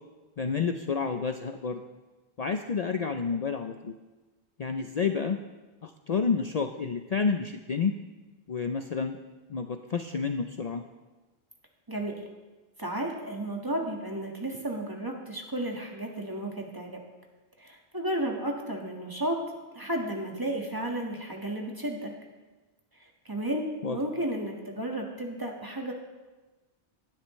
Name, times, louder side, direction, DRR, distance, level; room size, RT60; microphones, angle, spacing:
voice 1, 0.4-1.8 2.4-3.9 4.6-5.4 5.8-7.9 8.5-9.2 9.5-10.8 23.8-24.0, left 5 dB, 45° left, 6 dB, 0.6 m, -29 dB
voice 2, 11.9-12.2 12.8-17.0 17.6-19.4 19.7-22.1 23.0-25.9, right 1 dB, 20° right, 0 dB, 1.6 m, -33 dB
17.5 x 12.0 x 3.2 m, 1.2 s
omnidirectional pair, 1.1 m